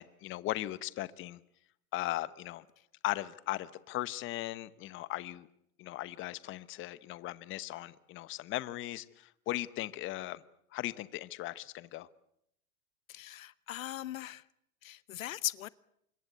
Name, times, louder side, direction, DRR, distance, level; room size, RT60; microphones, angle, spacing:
voice 1, 0.0-1.4 1.9-2.6 3.0-5.5 5.8-10.4 10.7-12.1, left 16 dB, 30° left, 1.0 m, -38 dB
voice 2, 13.1-14.4 14.8-15.7, left 14 dB, 70° left, 1.0 m, -39 dB
26.0 x 22.0 x 8.2 m
hypercardioid pair, 115°, 42 cm